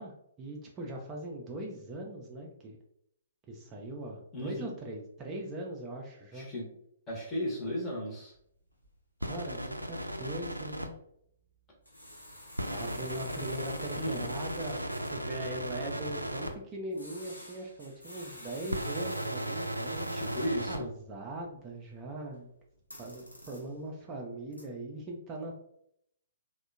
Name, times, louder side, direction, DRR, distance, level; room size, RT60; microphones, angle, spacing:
voice 1, 0.0-2.8 3.5-6.5 9.3-10.9 12.7-20.2 20.7-22.5 23.0-25.5, right 1 dB, 20° right, 0 dB, 0.4 m, -40 dB
voice 2, 4.3-4.7 6.3-6.7 7.1-8.3 14.0-14.2 20.1-20.9, equal, 20° left, -2 dB, 0.8 m, -35 dB
sound 1, 8.3-8.4 8.7-9.0 9.3-9.4 9.7-9.8 10.2-10.3 11.8-15.4 16.9-20.7 21.0-22.4 22.7-23.9 24.4-24.6, equal, 85° left, 0.7 m, -49 dB
sound 2, 9.2-10.9 12.6-16.5 18.7-20.8, right 1 dB, 85° right, 0.3 m, -36 dB
3.4 x 2.1 x 2.4 m, 0.72 s
figure-of-eight pair, 120°, 0 cm